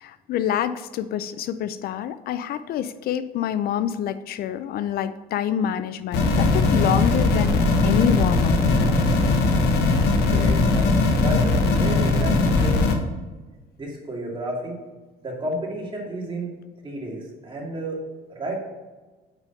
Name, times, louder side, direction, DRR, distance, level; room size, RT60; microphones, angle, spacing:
voice 1, 0.0-9.0, left 9 dB, 65° left, 13 dB, 0.4 m, -27 dB
sound 1, 6.1-12.9, left 3 dB, 80° left, 1.1 m, -19 dB
voice 2, 10.3-10.9 11.2-12.8 13.8-14.8 15.2-16.5 16.8-18.0 18.4-18.6, right 1 dB, 30° right, -2 dB, 2.3 m, -31 dB
6.1 x 5.0 x 5.6 m, 1.2 s
cardioid pair, 110°, 17 cm